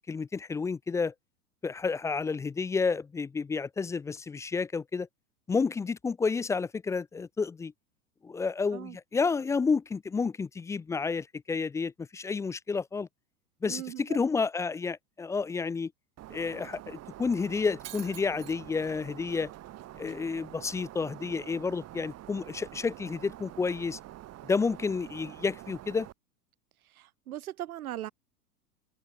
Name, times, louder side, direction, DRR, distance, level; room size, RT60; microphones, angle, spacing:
voice 1, 0.1-1.1 1.6-5.1 5.5-7.7 8.2-13.1 13.6-15.9 16.3-19.5 19.9-24.0 24.4-26.1, left 4 dB, 5° left, 0.4 m, -30 dB
voice 2, 13.7-14.2 26.9-28.1, right 13 dB, 65° right, 3.4 m, -39 dB
Shatter, 16.2-26.1, right 14 dB, 35° right, 2.8 m, -46 dB
open air
figure-of-eight pair, 95°, 46 cm